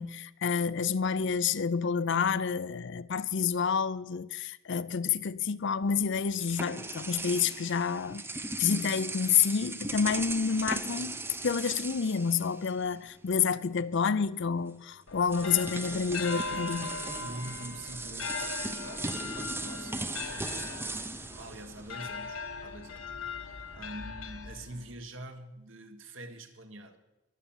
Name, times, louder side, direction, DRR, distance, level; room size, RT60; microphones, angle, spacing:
voice 1, 0.0-8.2 8.6-11.2 11.4-16.9, left 6 dB, 60° left, 0.5 m, -29 dB
sound 1, 5.8-13.1 13.4-13.6 14.7-14.8 15.2-22.4, right 2 dB, 10° right, 0.6 m, -38 dB
sound 2, 15.1-25.0, left 4 dB, 75° left, 1.2 m, -40 dB
voice 2, 17.2-20.9 21.2-23.1 23.7-27.0, right 1 dB, 65° right, 1.6 m, -45 dB
22.0 x 7.3 x 7.3 m
head